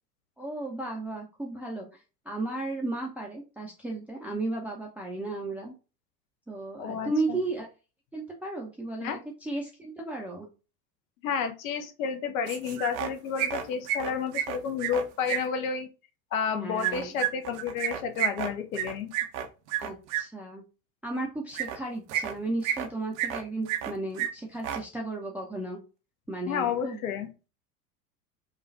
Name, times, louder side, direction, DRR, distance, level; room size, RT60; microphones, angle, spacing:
voice 1, 0.4-5.7 6.5-7.7 8.1-9.1 9.4-10.5 16.5-17.2 19.8-20.6 21.0-25.8 26.3-27.1, right 2 dB, 5° right, 0.7 m, -34 dB
voice 2, 6.8-7.4 9.0-9.2 11.2-15.9 16.3-19.1 26.5-27.3, left 6 dB, 55° left, 0.9 m, -31 dB
sound 1, 12.5-13.1 13.4-15.4 16.8-20.2 21.5-21.8 22.1-22.9 23.2-23.9 24.2-24.3 24.6-24.8, right 11 dB, 45° right, 0.8 m, -30 dB
4.9 x 2.4 x 3.2 m
figure-of-eight pair, 80°, 48 cm